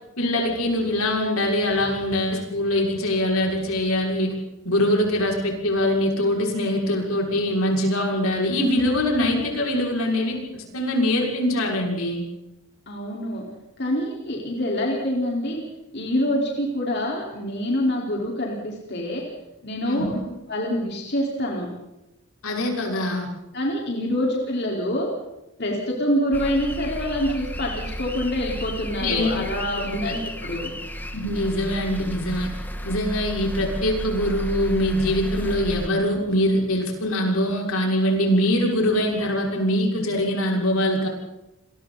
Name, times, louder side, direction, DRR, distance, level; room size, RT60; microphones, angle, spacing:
voice 1, 0.2-4.3 4.6-12.2 19.8-20.3 22.4-23.3 29.0-29.4 29.8-30.1 31.1-32.5 32.8-41.1, left 1 dB, 80° left, 0 dB, 6.3 m, -23 dB
voice 2, 12.9-13.4 13.8-15.6 15.9-19.2 19.6-20.2 20.5-21.7 23.5-25.1 25.6-30.7, equal, 50° left, -2 dB, 4.6 m, -26 dB
sound 1, 26.3-35.9, equal, 10° left, 1.8 m, -33 dB
28.5 x 23.0 x 4.2 m, 0.93 s
head